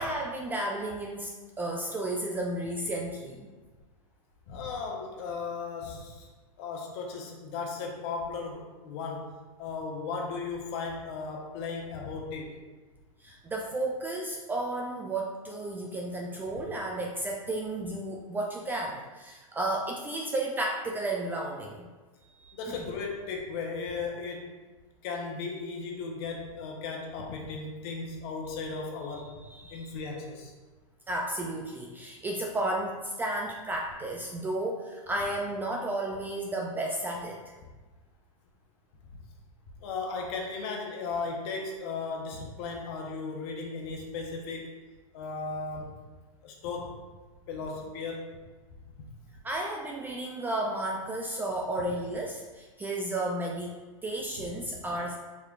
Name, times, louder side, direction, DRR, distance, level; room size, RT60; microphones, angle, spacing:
voice 1, 0.0-3.5 13.2-21.9 22.4-22.9 29.4-29.9 31.1-37.4 49.4-53.8 54.0-55.2, right 1 dB, 10° right, -1 dB, 0.3 m, -33 dB
voice 2, 4.5-6.3 6.6-12.6 22.5-24.5 25.0-29.4 29.7-30.5 39.1-39.2 39.8-44.8 45.1-46.0 46.4-47.1 47.5-48.4 54.4-54.8, left 4 dB, 50° left, 1 dB, 1.0 m, -36 dB
4.9 x 4.3 x 2.5 m, 1.3 s
hypercardioid pair, 130°, 18 cm